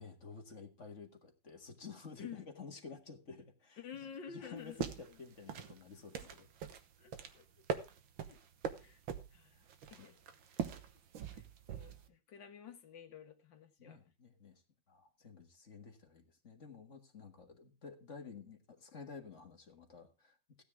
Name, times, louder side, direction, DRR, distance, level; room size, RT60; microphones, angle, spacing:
voice 1, 0.0-3.8 4.3-6.5 9.5-9.6 10.0-10.2 13.8-20.6, left 5 dB, 40° left, 1.9 m, -52 dB
voice 2, 3.8-4.8 6.2-6.3 7.0-7.8 8.3-8.4 8.8-9.0 9.3-9.6 9.9-10.2 11.3-14.0, left 7 dB, 70° left, 2.2 m, -51 dB
sound 1, 4.6-12.1, right 7 dB, 85° right, 2.0 m, -43 dB
15.5 x 9.4 x 3.6 m
omnidirectional pair, 2.1 m